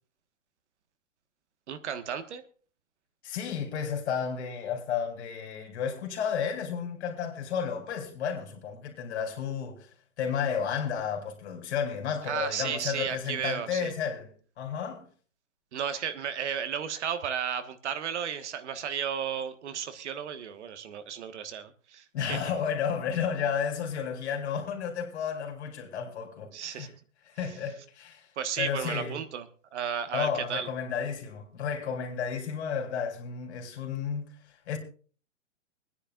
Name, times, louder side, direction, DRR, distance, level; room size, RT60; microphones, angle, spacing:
voice 1, 1.7-2.4 12.2-13.9 15.7-22.4 26.5-26.9 28.4-29.4 29.7-30.7, right 8 dB, 65° right, 1.5 m, -33 dB
voice 2, 3.2-9.9 10.2-14.3 14.6-15.1 22.1-26.9 27.3-28.3 28.6-29.2 30.1-34.3 34.7-34.8, left 7 dB, 60° left, 3.4 m, -32 dB
25.0 x 9.9 x 2.4 m
hypercardioid pair, 125°, 37 cm